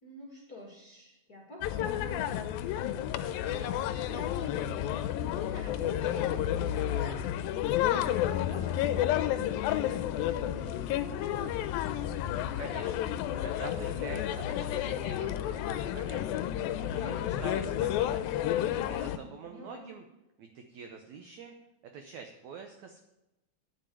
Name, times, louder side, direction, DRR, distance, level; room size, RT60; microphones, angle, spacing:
voice 1, 0.0-2.3 3.3-7.6 8.1-10.0 10.3-11.8 19.2-19.9, left 2 dB, 40° left, -1 dB, 1.3 m, -47 dB
sound 1, 1.6-19.2, left 11 dB, 80° left, 2.3 m, -31 dB
voice 2, 12.6-16.4 16.9-18.3 18.8-20.0 20.4-21.5 21.8-23.0, right 6 dB, 75° right, 5 dB, 1.7 m, -45 dB
9.5 x 7.8 x 7.5 m, 0.95 s
omnidirectional pair, 4.4 m